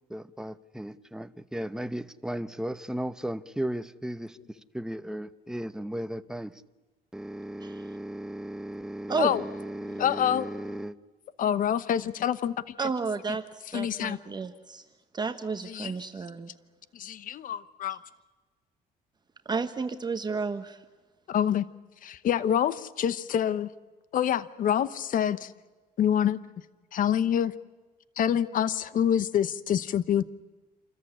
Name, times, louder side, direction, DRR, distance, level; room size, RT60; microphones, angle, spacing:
voice 1, 0.1-4.4 4.7-6.5 7.1-10.9, right 1 dB, 5° right, 12 dB, 0.9 m, -36 dB
voice 2, 10.0-10.5 11.4-12.7 13.7-14.2 15.6-16.0 16.9-18.0 21.3-21.7 22.0-23.7 24.1-25.5 26.0-26.4 26.9-27.5 28.2-30.2, left 9 dB, 55° left, 16 dB, 0.9 m, -26 dB
voice 3, 12.8-13.4 13.7-14.8 15.1-16.5 19.4-20.8, right 4 dB, 25° right, 7 dB, 1.2 m, -31 dB
28.0 x 14.0 x 10.0 m, 1.3 s
cardioid pair, 110°, 17 cm